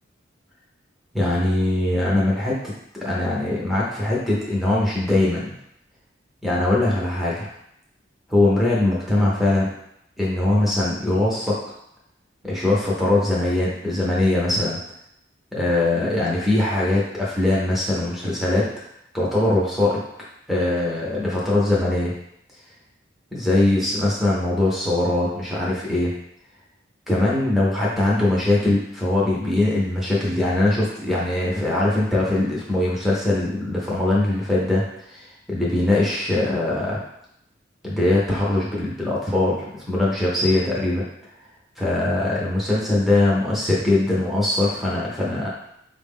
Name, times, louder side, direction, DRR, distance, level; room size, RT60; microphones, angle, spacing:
voice 1, 1.1-2.7 3.0-5.6 6.4-7.5 8.3-9.7 10.2-11.6 12.4-14.8 15.5-18.6 19.1-20.0 20.5-22.1 23.3-26.1 27.1-37.0 37.8-41.0 41.8-45.5, left 2 dB, ahead, -6 dB, 0.6 m, -21 dB
4.2 x 2.0 x 3.6 m, 0.77 s
head